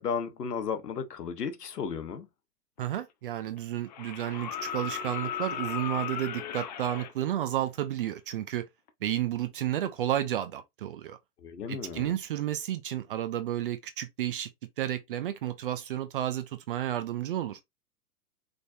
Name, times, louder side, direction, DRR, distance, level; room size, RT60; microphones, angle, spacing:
voice 1, 0.0-2.3 11.4-12.1, left 6 dB, 70° left, 1.1 m, -34 dB
sound 1, 2.8-2.9 3.9-7.1 8.9-9.0, left 9 dB, 30° left, 0.5 m, -36 dB
voice 2, 2.8-8.7 9.0-11.2 11.7-14.5 14.8-17.6, right 12 dB, 35° right, 0.5 m, -32 dB
5.1 x 3.3 x 2.6 m
figure-of-eight pair, 115°, 49 cm